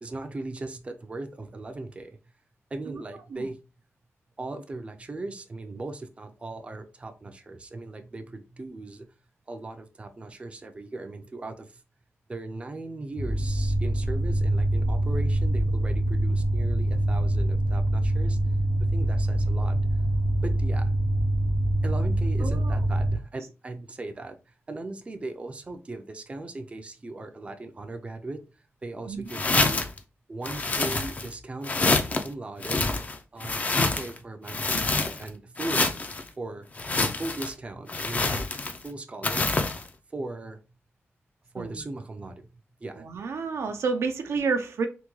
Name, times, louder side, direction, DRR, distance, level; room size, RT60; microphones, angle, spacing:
voice 1, 0.0-2.1 2.7-3.6 4.4-9.1 9.5-11.7 12.3-18.4 18.9-19.8 20.4-21.0 21.8-24.3 24.7-28.4 28.8-29.8 30.3-32.8 33.3-35.9 36.4-36.7 37.2-38.6 38.8-39.5 40.1-40.6 41.5-42.4 42.8-43.0, right 2 dB, 25° right, 0.4 m, -38 dB
voice 2, 2.9-3.5 22.4-22.9 29.1-29.3 41.5-41.9 42.9-44.9, right 4 dB, 80° right, 0.5 m, -30 dB
sound 1, 13.2-23.1, right 1 dB, 70° left, 0.7 m, -24 dB
sound 2, 29.3-30.0 30.4-31.3 31.6-32.3 32.6-34.2 34.5-35.3 35.6-36.2 36.8-37.5 37.9-38.9 39.2-39.8, left 3 dB, 35° left, 0.4 m, -26 dB
3.4 x 2.2 x 3.0 m
wide cardioid pair, 125°, 5 cm